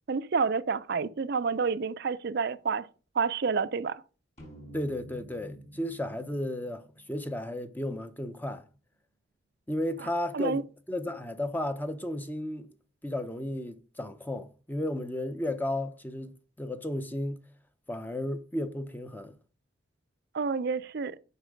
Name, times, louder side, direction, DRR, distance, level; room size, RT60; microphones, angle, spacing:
voice 1, 0.1-2.9 3.1-4.0 10.3-10.6 20.3-21.2, right 5 dB, 55° right, 0.5 m, -29 dB
sound 1, 4.4-7.9, equal, 35° left, 4.5 m, -49 dB
voice 2, 4.7-8.6 9.7-12.7 13.0-17.4 17.9-19.4, left 1 dB, 10° left, 0.7 m, -34 dB
8.2 x 5.4 x 5.1 m
head